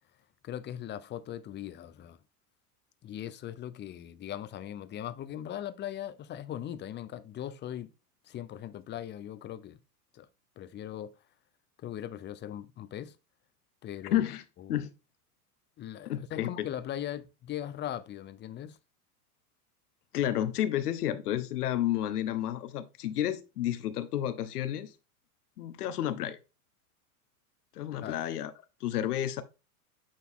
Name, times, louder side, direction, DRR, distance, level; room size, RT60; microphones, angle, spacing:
voice 1, 0.4-2.2 3.0-7.9 8.2-9.8 10.1-10.3 10.6-11.1 11.8-13.2 13.8-14.3 14.6-14.9 15.8-18.8 28.0-28.2, left 11 dB, 25° left, 0.6 m, -39 dB
voice 2, 14.1-14.4 14.7-14.9 16.0-16.7 20.1-24.9 25.6-26.4 27.7-28.5 28.8-29.4, left 12 dB, 80° left, 1.1 m, -31 dB
8.6 x 3.9 x 3.7 m
hypercardioid pair, 110°, 45 cm